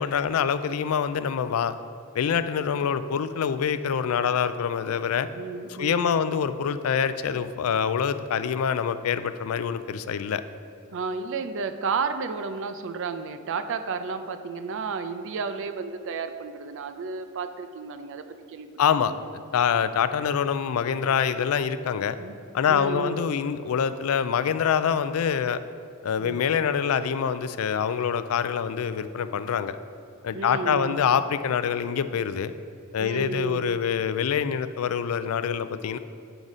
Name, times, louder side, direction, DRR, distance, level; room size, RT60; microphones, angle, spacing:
voice 1, 0.0-1.7 2.1-5.3 5.8-10.4 18.8-19.1 19.5-22.2 22.5-25.6 26.0-29.8 30.2-32.5 32.9-36.0, left 7 dB, 90° left, 12 dB, 0.4 m, -25 dB
voice 2, 5.4-6.3 10.9-18.7 19.0-19.3 22.2-22.3 22.7-23.2 26.2-26.4 30.3-31.0 33.0-33.6, right 5 dB, 65° right, 9 dB, 0.5 m, -32 dB
8.9 x 4.0 x 4.8 m, 2.4 s
head